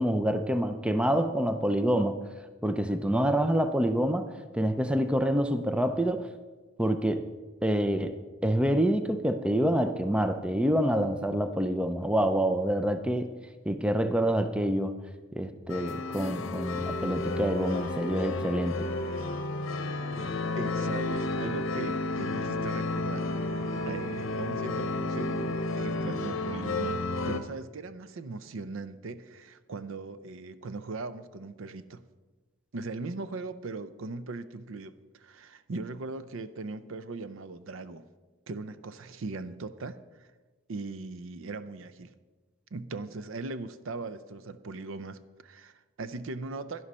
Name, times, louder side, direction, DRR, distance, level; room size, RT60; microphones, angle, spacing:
voice 1, 0.0-2.2 2.6-6.3 6.8-7.3 7.6-8.2 8.4-13.3 13.7-14.9 15.3-18.8, equal, 5° right, 9 dB, 0.4 m, -27 dB
sound 1, 15.7-27.4, left 2 dB, 65° left, 0.8 m, -32 dB
voice 2, 20.6-32.0 32.7-38.0 38.5-40.3 40.7-42.1 42.7-46.8, right 3 dB, 65° right, 13 dB, 0.5 m, -39 dB
11.0 x 11.0 x 4.2 m, 1.3 s
head